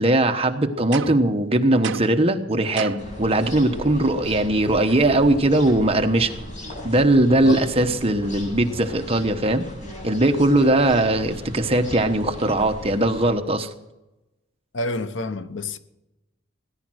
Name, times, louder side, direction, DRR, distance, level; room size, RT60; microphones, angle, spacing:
voice 1, 0.0-6.3 6.8-9.7 10.0-13.7, right 1 dB, 30° right, 1.1 m, -20 dB
sound 1, 0.9-1.4 1.8-2.3 2.8-3.2, right 6 dB, 70° right, 0.7 m, -31 dB
sound 2, 3.0-13.3, equal, 40° left, 8.0 m, -37 dB
voice 2, 14.7-15.8, left 2 dB, 65° left, 0.9 m, -28 dB
18.0 x 11.0 x 6.3 m
head